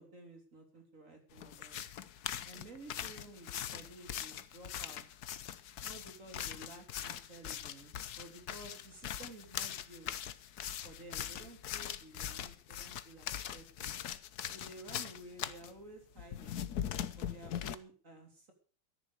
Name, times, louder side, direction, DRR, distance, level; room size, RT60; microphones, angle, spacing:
voice 1, 0.0-1.8 2.4-5.0 5.8-10.3 10.8-13.9 14.5-16.6 17.2-18.5, right 2 dB, 40° right, 4 dB, 3.7 m, -53 dB
sound 1, 1.4-15.7 16.2-17.8, left 10 dB, 60° left, 1.2 m, -41 dB
13.5 x 10.5 x 6.7 m, 0.40 s
omnidirectional pair, 2.1 m